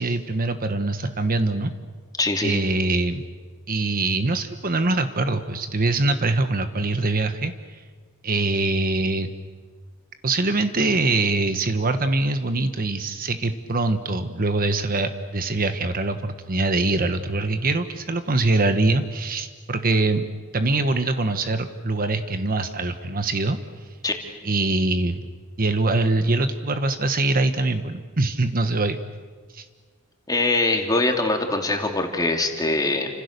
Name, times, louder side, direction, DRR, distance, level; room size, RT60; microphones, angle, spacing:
voice 1, 0.0-1.7 2.4-3.2 3.7-7.8 8.2-9.3 10.2-20.3 20.5-23.6 24.4-25.2 25.6-29.0 29.5-29.6, right 2 dB, 40° right, 9 dB, 1.2 m, -23 dB
voice 2, 2.2-2.6 24.0-24.1 30.3-33.1, left 2 dB, 15° left, 3 dB, 2.9 m, -23 dB
30.0 x 26.5 x 6.8 m, 1.5 s
head